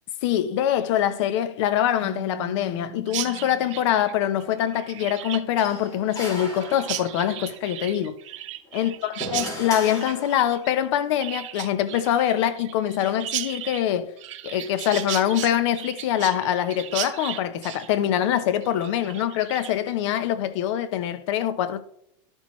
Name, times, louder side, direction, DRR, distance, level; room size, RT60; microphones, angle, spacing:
voice 1, 0.2-8.2 8.7-14.1 14.4-21.8, left 10 dB, 65° left, 0.9 m, -24 dB
Keyboard (musical), 2.0-4.7, right 8 dB, 15° right, 1.5 m, -45 dB
Chirp tweet, 3.1-19.9, right 14 dB, 75° right, 0.9 m, -36 dB
sound 1, 5.6-7.3 8.7-10.7, equal, 20° left, 2.8 m, -36 dB
11.5 x 6.2 x 3.2 m
supercardioid pair, 145°, 16 cm